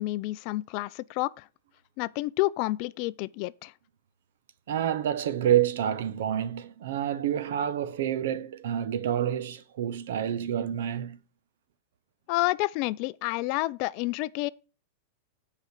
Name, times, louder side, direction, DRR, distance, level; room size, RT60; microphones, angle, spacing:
voice 1, 0.0-1.5 2.0-3.7 12.3-14.5, left 20 dB, 50° left, 0.4 m, -29 dB
voice 2, 4.7-11.2, right 10 dB, 75° right, 0.8 m, -28 dB
8.1 x 5.0 x 6.6 m
supercardioid pair, 140°, 0 cm